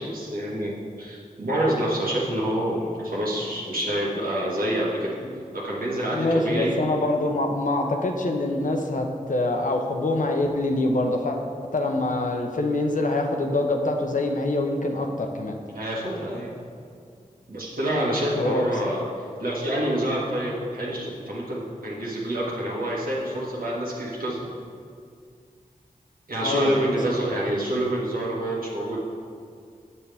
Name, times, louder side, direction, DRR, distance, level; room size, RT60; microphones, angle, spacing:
voice 1, 0.0-5.1 5.5-6.8 15.8-16.6 17.5-24.5 26.3-29.0, right 1 dB, 80° right, -5 dB, 1.7 m, -27 dB
voice 2, 6.0-11.4 11.7-15.6 18.4-18.6 26.4-27.2, left 2 dB, 60° left, 3 dB, 0.8 m, -25 dB
7.2 x 6.9 x 3.5 m, 2.2 s
cardioid pair, 45°, 15 cm